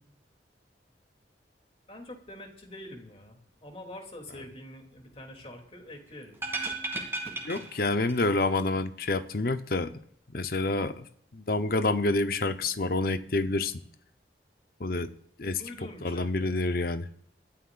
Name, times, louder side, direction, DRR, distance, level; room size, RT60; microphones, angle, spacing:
voice 1, 1.9-6.4 15.6-16.5, left 1 dB, 35° left, 2.8 m, -45 dB
sound 1, 6.3-8.3 8.5-8.6, right 3 dB, 15° right, 2.8 m, -35 dB
voice 2, 7.4-9.9 10.3-11.1 11.3-13.7 14.8-15.1 15.4-15.6 16.0-17.1, left 2 dB, 55° left, 0.8 m, -28 dB
22.0 x 13.5 x 2.5 m
head